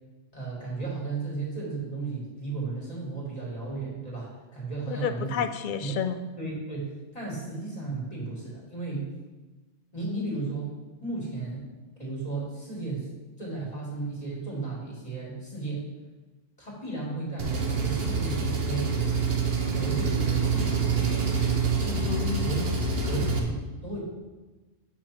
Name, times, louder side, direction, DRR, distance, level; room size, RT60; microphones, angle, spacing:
voice 1, 0.3-5.4 5.8-5.9 6.4-9.0 9.9-10.7 11.0-11.7 12.0-13.1 13.4-15.9 16.6-18.9 19.7-20.9 21.7-22.1 22.4-24.0, right 3 dB, 30° left, -4 dB, 2.6 m, -34 dB
voice 2, 4.9-6.2 22.1-22.8, left 7 dB, 55° left, 9 dB, 0.6 m, -31 dB
Engine, 17.4-23.4, right 4 dB, 55° right, 1.2 m, -26 dB
7.2 x 7.1 x 4.4 m, 1.2 s
omnidirectional pair, 1.3 m